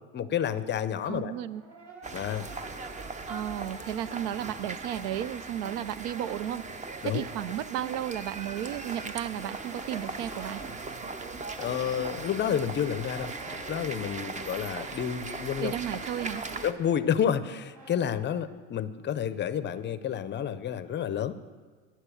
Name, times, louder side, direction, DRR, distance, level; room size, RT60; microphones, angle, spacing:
voice 1, 0.1-1.3 2.1-2.5 7.0-7.2 11.6-15.7 16.6-21.3, left 9 dB, 30° left, 14 dB, 0.5 m, -30 dB
voice 2, 1.1-1.6 3.3-6.6 7.0-10.6 15.6-16.4, right 11 dB, 75° right, 18 dB, 0.5 m, -33 dB
Brass instrument, 1.2-5.6 5.9-18.0, right 2 dB, 45° right, 3.9 m, -51 dB
sound 1, 2.0-16.7, right 4 dB, 20° right, 0.6 m, -39 dB
11.0 x 7.3 x 6.9 m, 1.5 s
supercardioid pair, 105°, 38 cm